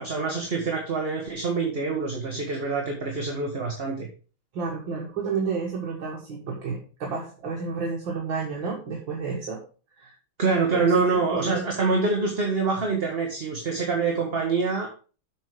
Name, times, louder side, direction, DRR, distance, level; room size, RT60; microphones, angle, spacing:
voice 1, 0.0-4.1 10.4-14.9, right 4 dB, 30° right, 1 dB, 1.4 m, -25 dB
voice 2, 4.5-9.6 10.0-10.1 10.7-11.6, right 5 dB, 65° right, -2 dB, 2.4 m, -31 dB
8.3 x 6.3 x 4.9 m, 0.37 s
omnidirectional pair, 2.2 m